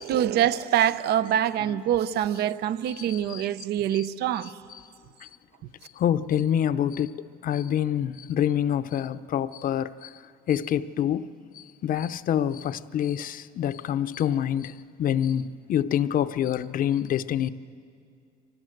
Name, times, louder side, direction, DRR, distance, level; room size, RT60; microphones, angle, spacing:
voice 1, 0.0-4.5, right 10 dB, 75° right, 0.7 m, -25 dB
voice 2, 3.0-3.4 5.2-5.3 6.0-10.1 10.5-11.3 11.5-17.5, left 10 dB, 55° left, 0.7 m, -26 dB
24.5 x 18.5 x 7.9 m
cardioid pair, 110°, 17 cm